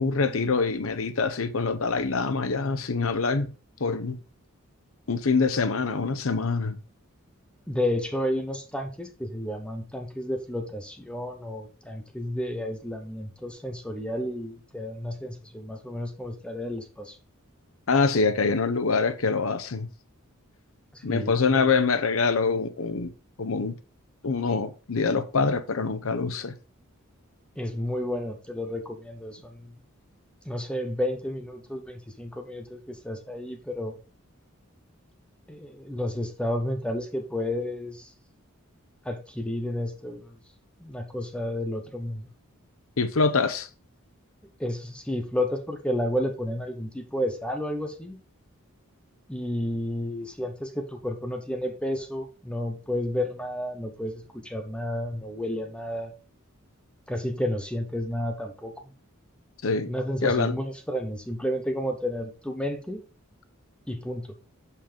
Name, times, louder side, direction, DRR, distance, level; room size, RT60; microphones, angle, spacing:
voice 1, 0.0-3.5 3.8-4.2 5.1-6.8 17.9-19.9 21.0-23.1 23.4-23.8 24.2-26.5 43.0-43.7 59.6-59.9 60.2-60.5, left 4 dB, 70° left, 0.8 m, -25 dB
voice 2, 7.7-17.2 21.1-21.3 27.6-29.7 30.5-33.9 35.5-38.1 39.0-40.3 40.8-42.3 44.6-48.2 49.3-56.1 57.1-58.7 59.9-63.0 63.9-64.3, left 1 dB, 5° left, 0.9 m, -31 dB
5.7 x 5.3 x 5.0 m
head